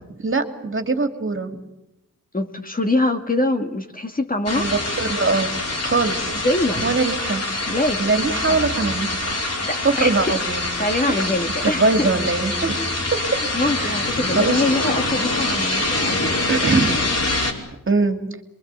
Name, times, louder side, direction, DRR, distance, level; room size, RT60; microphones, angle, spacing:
voice 1, 0.2-1.6 4.5-5.5 5.8-6.3 6.8-7.4 8.0-9.4 9.8-10.7 11.1-11.3 11.6-12.8 13.1-13.2 13.8-14.0 14.3-14.6 16.5-17.0 17.9-18.2, right 3 dB, 40° right, 6 dB, 2.8 m, -22 dB
voice 2, 2.3-4.7 6.3-7.0 7.7-8.7 9.7-12.1 13.2-16.4, left 2 dB, 25° left, 5 dB, 2.3 m, -24 dB
sound 1, 4.5-17.5, left 2 dB, 50° left, 5.1 m, -25 dB
27.5 x 23.0 x 8.4 m, 0.90 s
cardioid pair, 80°, 32 cm